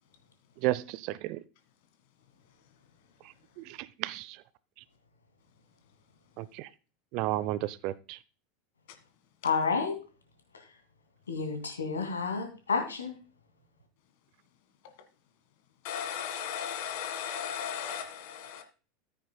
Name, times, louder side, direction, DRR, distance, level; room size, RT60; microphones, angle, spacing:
voice 1, 0.6-1.4 4.0-4.3 6.4-6.7 7.1-8.2, right 16 dB, 50° right, 0.5 m, -32 dB
voice 2, 9.4-9.9 11.3-13.2, left 5 dB, 75° left, 2.5 m, -30 dB
voice 3, 15.8-18.6, left 8 dB, 55° left, 1.7 m, -36 dB
14.0 x 9.2 x 2.3 m
figure-of-eight pair, 80°, 0 cm